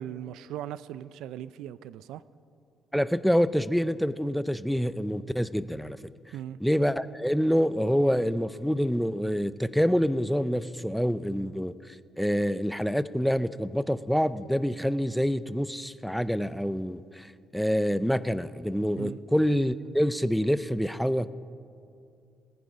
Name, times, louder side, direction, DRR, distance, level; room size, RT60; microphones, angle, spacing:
voice 1, 0.0-2.2 6.3-6.6 19.0-19.2, right 11 dB, 85° right, 17 dB, 0.4 m, -38 dB
voice 2, 2.9-6.0 6.6-11.7 12.2-21.3, equal, ahead, 15 dB, 0.4 m, -26 dB
19.5 x 9.5 x 5.0 m, 2.4 s
cardioid pair, 90°, 0 cm